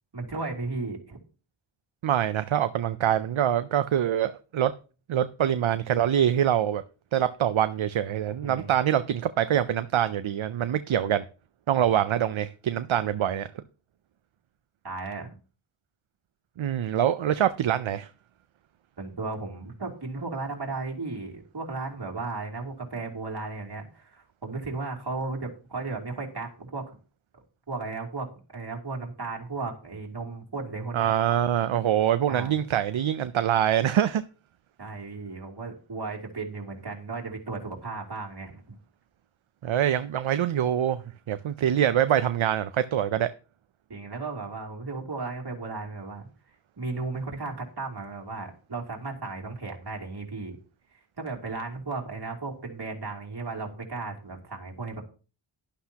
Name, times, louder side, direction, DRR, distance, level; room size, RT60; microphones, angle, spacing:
voice 1, 0.1-1.2 8.4-8.7 14.8-15.3 19.0-26.9 27.7-28.3 28.5-31.1 32.3-32.5 34.8-38.6 43.9-46.3 46.8-50.6 51.2-55.0, right 3 dB, 55° right, 3.0 m, -35 dB
voice 2, 2.0-4.7 5.1-6.8 7.1-11.2 11.7-13.5 16.6-18.1 30.9-34.2 39.6-41.0 41.3-43.3, right 10 dB, 75° right, 0.6 m, -24 dB
11.5 x 11.5 x 2.9 m
wide cardioid pair, 80°, 48 cm